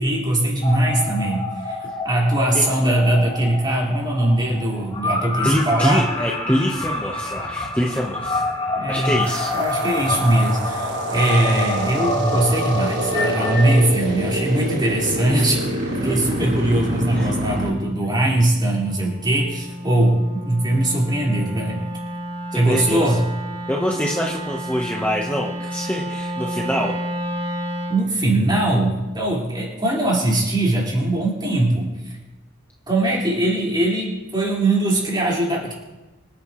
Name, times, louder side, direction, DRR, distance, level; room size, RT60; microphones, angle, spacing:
voice 1, 0.0-6.0 8.7-9.2 9.5-15.6 15.9-21.9 22.5-23.3 27.9-32.1 32.9-35.7, right 1 dB, 20° right, -5 dB, 4.7 m, -21 dB
sound 1, 0.6-13.8, left 1 dB, 25° left, 2.4 m, -27 dB
voice 2, 5.4-8.4 8.9-9.5 16.0-16.1 17.1-17.3 22.6-23.2 23.7-26.9, equal, 5° left, -2 dB, 1.2 m, -24 dB
sound 2, 9.2-17.7, equal, 70° right, 6.0 m, -27 dB
Wind instrument woodwind instrument, 16.5-28.1, equal, 55° right, 5.7 m, -32 dB
26.0 x 9.9 x 3.2 m, 1.1 s
head